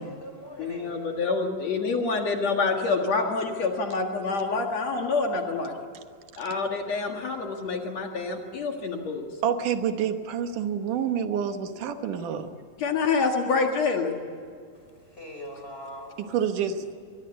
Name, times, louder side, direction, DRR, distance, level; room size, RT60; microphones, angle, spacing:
voice 1, 0.0-1.0 15.0-16.2, equal, 15° left, 3 dB, 5.6 m, -41 dB
voice 2, 0.6-5.7 6.4-9.3 12.8-14.2, left 4 dB, 60° left, 2 dB, 2.8 m, -27 dB
voice 3, 9.4-12.6 16.3-16.9, right 8 dB, 80° right, 8 dB, 2.7 m, -28 dB
24.0 x 21.0 x 8.0 m, 2.2 s
omnidirectional pair, 3.7 m